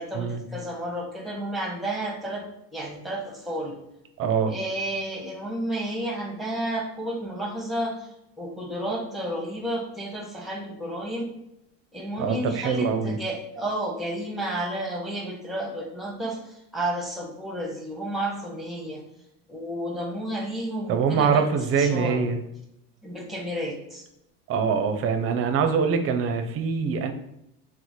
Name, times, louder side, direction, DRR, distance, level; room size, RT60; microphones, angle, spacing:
voice 1, 0.0-2.4 2.7-3.8 4.5-8.1 8.4-11.3 11.9-16.4 16.7-19.0 19.5-22.2 23.0-24.0, right 1 dB, ahead, 1 dB, 0.7 m, -31 dB
voice 2, 4.2-4.5 12.2-13.2 20.9-22.4 24.5-27.1, right 6 dB, 35° right, 8 dB, 0.5 m, -24 dB
3.0 x 2.1 x 4.1 m, 0.81 s
supercardioid pair, 100°, 39 cm